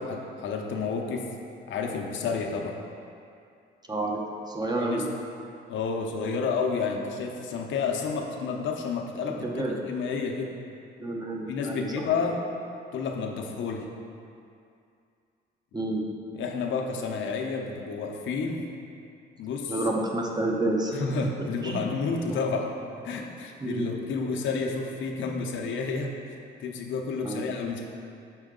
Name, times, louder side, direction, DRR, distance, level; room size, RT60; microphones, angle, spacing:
voice 1, 0.1-1.3 1.7-2.8 4.8-5.1 5.7-10.5 11.5-12.5 12.9-13.9 16.3-18.6 19.4-19.7 20.9-22.7 23.0-26.2 26.6-27.9, left 5 dB, 75° left, 2 dB, 0.7 m, -30 dB
voice 2, 3.9-5.1 9.4-9.8 11.0-12.1 15.7-16.0 19.7-20.9 21.6-21.8 23.6-23.9 27.2-27.4, right 2 dB, 20° right, 0 dB, 0.8 m, -29 dB
6.2 x 4.4 x 3.7 m, 2.5 s
cardioid pair, 90°, 20 cm